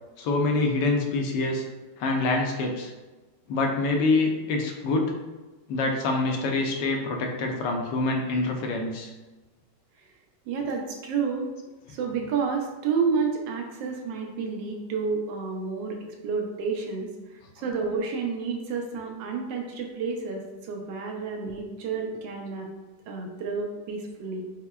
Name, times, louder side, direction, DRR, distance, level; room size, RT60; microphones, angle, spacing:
voice 1, 0.2-1.6 2.0-2.9 3.5-5.1 5.7-9.1 17.6-17.8, left 3 dB, 80° left, 2 dB, 1.2 m, -26 dB
voice 2, 10.5-11.5 11.9-16.0 16.2-22.7 23.1-24.4, right 5 dB, 90° right, 1 dB, 1.3 m, -30 dB
5.7 x 2.1 x 2.2 m, 1.2 s
omnidirectional pair, 1.9 m